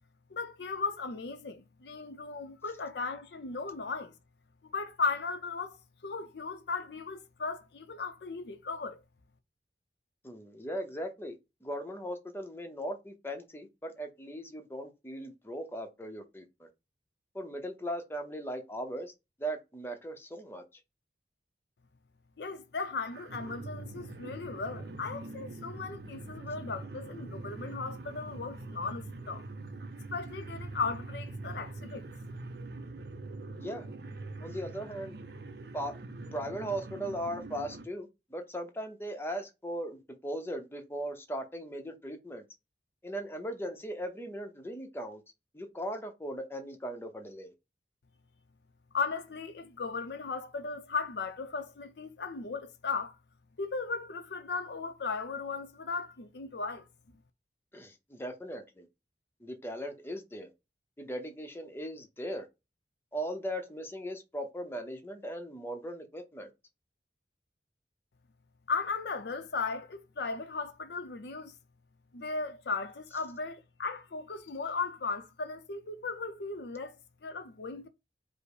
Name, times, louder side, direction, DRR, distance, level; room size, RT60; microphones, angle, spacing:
voice 1, 0.3-4.1 4.7-5.8 6.0-9.0 22.4-29.4 30.1-32.1 48.9-53.2 53.6-56.9 68.7-71.5 72.1-77.0 77.2-77.9, left 4 dB, 65° left, 0.5 m, -36 dB
voice 2, 10.2-16.7 17.3-19.1 19.4-20.6 33.6-33.9 34.4-35.2 35.7-36.0 36.3-42.4 43.0-45.2 45.5-47.5 57.7-58.9 59.4-60.5 61.0-62.5 63.1-66.5, equal, 15° left, 0.7 m, -38 dB
sound 1, 23.1-37.9, right 2 dB, 65° right, 0.6 m, -43 dB
5.0 x 2.0 x 4.7 m
head